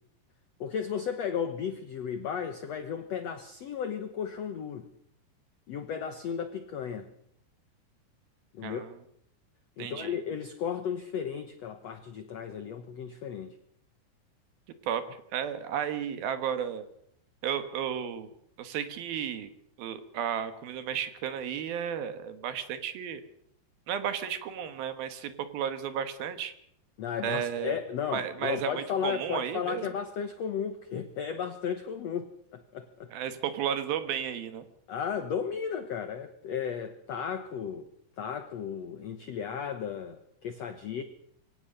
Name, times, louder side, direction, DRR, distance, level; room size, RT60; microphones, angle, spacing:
voice 1, 0.6-4.9 5.7-7.1 8.5-8.8 9.8-13.5 27.0-33.1 34.9-37.9 38.2-41.0, left 7 dB, 85° left, 9 dB, 1.4 m, -34 dB
voice 2, 8.6-8.9 9.8-10.2 14.8-15.0 15.3-16.9 17.4-18.3 18.6-19.5 19.8-23.2 23.9-26.5 27.2-27.8 28.1-29.9 33.1-34.6, right 8 dB, 70° right, 10 dB, 3.1 m, -33 dB
24.0 x 17.0 x 6.6 m, 0.71 s
omnidirectional pair, 4.7 m